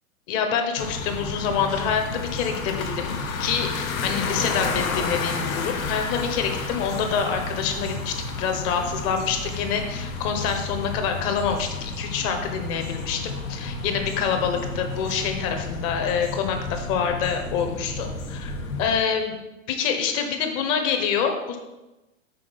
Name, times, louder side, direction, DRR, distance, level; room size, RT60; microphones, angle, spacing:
voice 1, 0.3-13.2 13.5-21.6, left 6 dB, 35° left, 5 dB, 0.9 m, -26 dB
sound 1, 0.8-19.0, left 3 dB, 90° left, 1.0 m, -31 dB
5.7 x 3.8 x 5.4 m, 1.0 s
hypercardioid pair, 130°, 40 cm